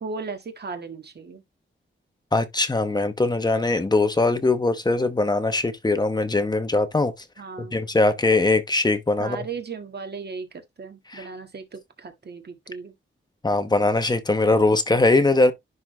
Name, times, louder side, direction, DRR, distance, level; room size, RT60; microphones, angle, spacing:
voice 1, 0.0-1.4 7.4-7.8 9.2-12.9, right 4 dB, 50° right, 1.7 m, -36 dB
voice 2, 2.3-7.1 7.6-9.5 11.1-11.3 13.4-15.5, left 2 dB, 20° left, 0.9 m, -21 dB
11.0 x 3.8 x 3.2 m
wide cardioid pair, 170°, 21 cm